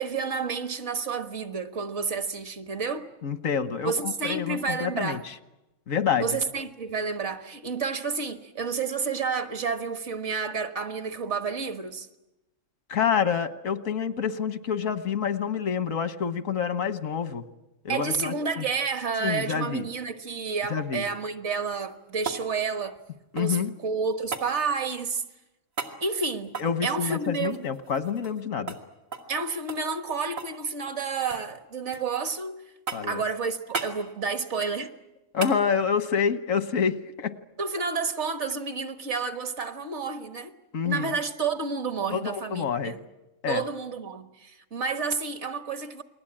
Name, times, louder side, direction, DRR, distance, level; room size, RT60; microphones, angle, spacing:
voice 1, 0.0-3.1 3.9-5.2 6.2-12.1 17.9-23.0 23.4-25.2 26.0-27.6 29.3-32.6 33.0-34.9 37.6-40.5 40.8-43.0 43.5-46.0, right 5 dB, 65° right, 1.7 m, -30 dB
voice 2, 3.2-5.2 5.9-6.3 12.9-17.4 17.8-18.6 19.2-19.9 20.7-21.0 23.3-23.7 26.6-28.8 32.9-33.2 35.3-37.4 40.7-41.1 42.1-42.9 43.4-43.6, left 7 dB, 90° left, 1.5 m, -27 dB
sound 1, 21.6-23.7 24.3-24.5 25.7-26.0 26.5-28.4 28.7-28.8 29.1-29.3 29.7-30.6 30.9-31.5 31.9-32.4 32.9-33.2 33.7-34.0 35.4-35.6 38.0-38.1, right 5 dB, 90° right, 2.9 m, -36 dB
29.5 x 21.0 x 8.8 m
omnidirectional pair, 1.3 m